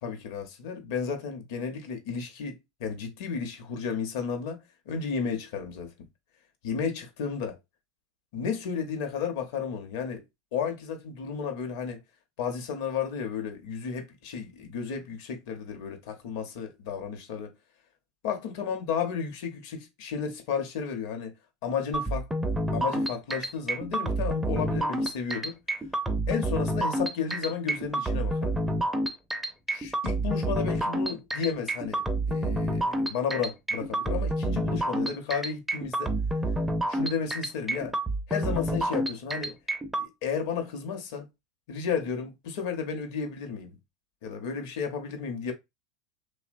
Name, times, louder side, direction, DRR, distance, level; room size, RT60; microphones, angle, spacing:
voice 1, 0.0-5.9 6.6-7.6 8.3-10.2 10.5-12.0 12.4-17.5 18.2-21.3 21.6-22.3 22.7-25.6 26.3-28.6 29.7-36.1 36.9-38.0 38.3-39.6 40.0-41.3 41.7-43.8 44.2-45.5, left 6 dB, 65° left, 0.8 m, -33 dB
sound 1, 21.9-40.1, right 1 dB, 10° right, 0.5 m, -28 dB
2.8 x 2.1 x 2.5 m
hypercardioid pair, 95°, 2 cm